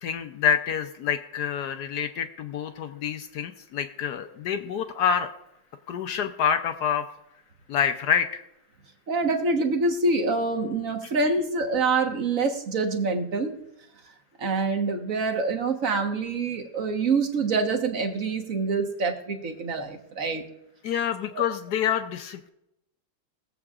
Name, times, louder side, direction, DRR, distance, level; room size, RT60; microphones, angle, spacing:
voice 1, 0.0-5.3 5.9-7.1 7.7-8.4 20.8-22.5, left 8 dB, 75° left, 8 dB, 0.9 m, -27 dB
voice 2, 9.1-13.6 14.4-20.5 21.3-21.4, right 3 dB, 45° right, 3 dB, 1.4 m, -26 dB
21.5 x 7.8 x 2.4 m, 0.84 s
omnidirectional pair, 2.3 m